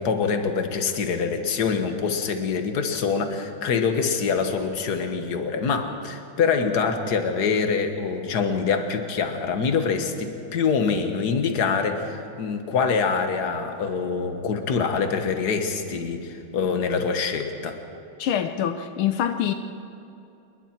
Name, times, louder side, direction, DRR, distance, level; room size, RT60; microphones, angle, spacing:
voice 1, 0.0-17.8, left 5 dB, 50° left, 6 dB, 1.9 m, -25 dB
voice 2, 18.2-19.5, left 9 dB, 80° left, 8 dB, 1.6 m, -25 dB
27.5 x 22.0 x 4.5 m, 2.8 s
omnidirectional pair, 2.3 m